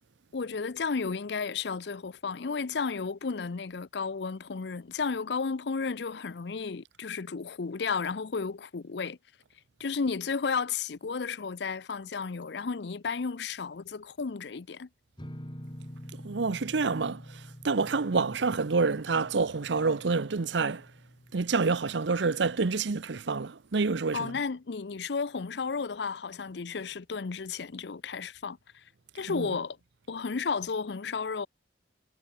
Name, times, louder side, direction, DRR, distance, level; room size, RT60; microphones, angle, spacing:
voice 1, 0.3-9.2 9.8-14.9 24.1-28.6 29.1-29.8 30.1-31.5, left 5 dB, 70° left, 0.6 m, -33 dB
sound 1, 15.2-22.8, equal, 25° left, 4.4 m, -47 dB
voice 2, 16.2-17.2 17.6-20.8 21.3-24.3 29.3-29.5, right 4 dB, 80° right, 0.7 m, -27 dB
head